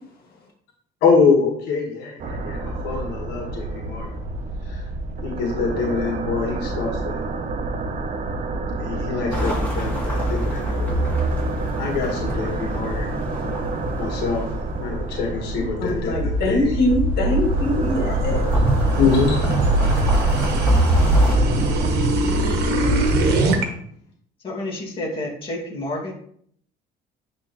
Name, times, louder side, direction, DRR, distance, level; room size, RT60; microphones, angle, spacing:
voice 1, 1.0-4.1 4.7-4.8 5.2-7.1 8.8-11.1 11.8-13.1 14.0-14.4 14.8-16.7 19.0-19.4 23.5-23.7, left 5 dB, 85° left, 0 dB, 1.5 m, -24 dB
sound 1, 2.2-21.9, right 3 dB, 45° right, 0.7 m, -29 dB
sound 2, 9.3-15.8 16.9-21.3, equal, 10° left, 2.7 m, -29 dB
voice 2, 15.8-18.6, left 1 dB, 65° left, 1 dB, 2.0 m, -23 dB
sound 3, 15.9-23.6, right 1 dB, 75° right, 1.2 m, -20 dB
voice 3, 24.4-26.1, left 1 dB, 30° left, -3 dB, 2.1 m, -29 dB
9.2 x 3.4 x 3.1 m, 0.62 s
cardioid pair, 110°, 17 cm